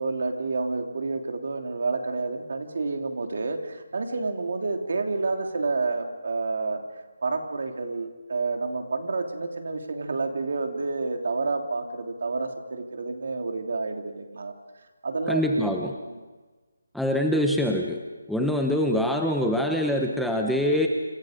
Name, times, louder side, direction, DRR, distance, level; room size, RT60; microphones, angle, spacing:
voice 1, 0.0-6.8 7.2-14.5 15.0-15.8 16.1-16.3, right 3 dB, 55° right, 4 dB, 3.1 m, -29 dB
voice 2, 15.3-15.9 16.9-18.0 18.3-20.9, left 1 dB, ahead, 1 dB, 0.9 m, -24 dB
28.0 x 26.5 x 5.2 m, 1.3 s
hypercardioid pair, 175°, 0 cm